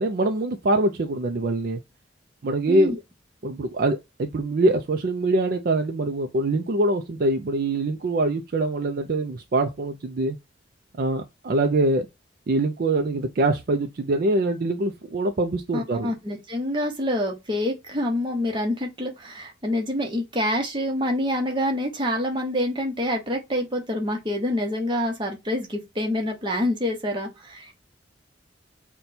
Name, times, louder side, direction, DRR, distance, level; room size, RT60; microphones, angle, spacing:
voice 1, 0.0-1.8 2.4-2.9 3.4-10.4 11.0-12.1 12.5-16.1, right 2 dB, 50° right, 0.4 m, -24 dB
voice 2, 15.7-27.7, left 1 dB, 25° right, 0.9 m, -26 dB
5.7 x 2.2 x 2.7 m
head